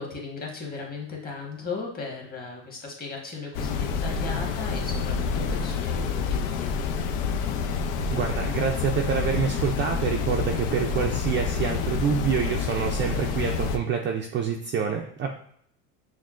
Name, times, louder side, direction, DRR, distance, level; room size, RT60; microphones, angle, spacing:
voice 1, 0.0-6.8, left 4 dB, 20° left, -1 dB, 1.3 m, -37 dB
sound 1, 3.5-13.8, left 5 dB, 75° left, 0.6 m, -28 dB
voice 2, 8.1-15.3, right 7 dB, 30° right, 2 dB, 0.4 m, -27 dB
6.0 x 2.1 x 2.4 m, 0.65 s
supercardioid pair, 100°, 41 cm